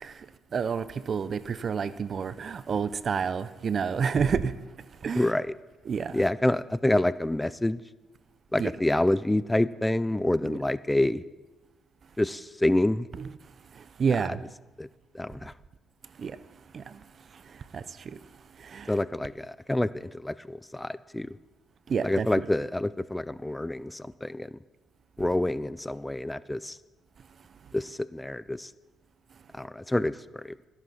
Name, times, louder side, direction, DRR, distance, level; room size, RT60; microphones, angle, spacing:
voice 1, 0.5-4.5 5.0-5.3 5.9-6.3 8.6-8.7 10.5-10.6 13.2-13.3 14.0-14.4 16.2-16.4 16.7-16.8 17.7-17.8 18.7-18.9 21.9-22.5, right 6 dB, 50° right, 0.5 m, -29 dB
voice 2, 5.1-5.5 6.1-7.8 8.5-11.2 12.2-13.1 14.3-14.4 14.8-14.9 15.1-15.5 18.9-21.3 22.0-24.5 25.2-26.8 27.7-28.7 29.5-30.5, left 1 dB, 10° left, 0.3 m, -27 dB
13.0 x 8.0 x 5.7 m
cardioid pair, 90°, 0 cm